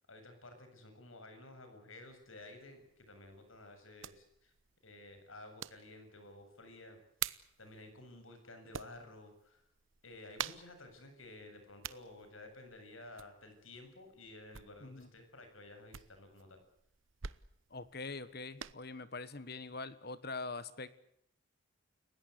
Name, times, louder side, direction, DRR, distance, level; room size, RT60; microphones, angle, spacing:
voice 1, 0.0-4.5 4.8-7.0 7.2-9.6 10.0-16.6, left 2 dB, 75° left, 7 dB, 7.6 m, -53 dB
sound 1, 2.0-18.7, right 9 dB, 75° right, 1.0 m, -49 dB
voice 2, 17.7-20.9, left 3 dB, 50° left, 14 dB, 1.4 m, -43 dB
30.0 x 17.5 x 8.2 m, 0.75 s
head